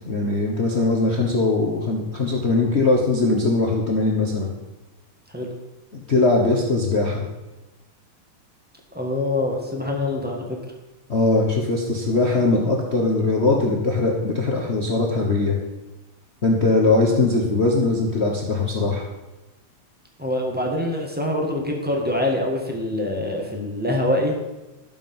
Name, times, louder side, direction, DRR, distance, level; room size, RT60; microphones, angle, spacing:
voice 1, 0.0-4.5 5.9-7.2 11.1-15.6 16.4-19.0, left 3 dB, 80° left, -1 dB, 0.6 m, -21 dB
voice 2, 8.9-10.4 20.2-24.4, left 1 dB, 5° right, 0 dB, 0.7 m, -24 dB
12.5 x 7.5 x 5.5 m, 1.1 s
omnidirectional pair, 3.3 m